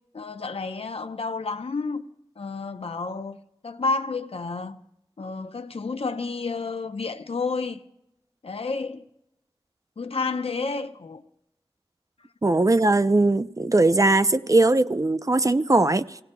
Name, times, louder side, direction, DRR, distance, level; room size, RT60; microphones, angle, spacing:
voice 1, 0.1-2.1 2.4-3.4 3.6-4.8 5.2-7.8 8.4-9.0 10.0-11.2, left 4 dB, 80° left, 0.7 m, -30 dB
voice 2, 12.4-16.2, right 2 dB, 35° right, 0.5 m, -20 dB
27.0 x 17.0 x 2.2 m
wide cardioid pair, 45°, 10 cm